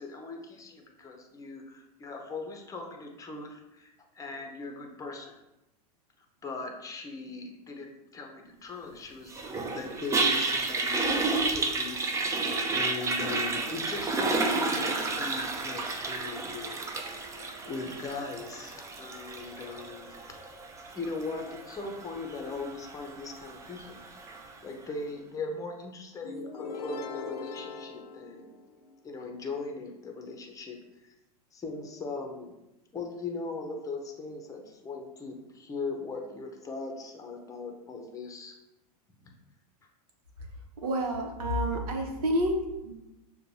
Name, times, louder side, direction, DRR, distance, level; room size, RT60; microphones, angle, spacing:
voice 1, 0.0-5.4 6.4-9.4 9.7-12.3 12.7-16.8 17.1-17.2 17.6-20.3 20.9-24.0 24.6-28.5 29.0-31.1 31.5-32.6 32.9-38.6 39.2-39.3, left 3 dB, 15° left, 3 dB, 0.7 m, -39 dB
Toilet flush, 9.3-24.5, right 3 dB, 15° right, 0.4 m, -31 dB
sound 1, 26.2-29.1, left 4 dB, 85° left, 0.6 m, -40 dB
voice 2, 40.8-42.5 42.8-42.9, right 1 dB, 70° right, 2 dB, 0.9 m, -28 dB
6.6 x 2.3 x 2.7 m, 0.95 s
hypercardioid pair, 105°, 20 cm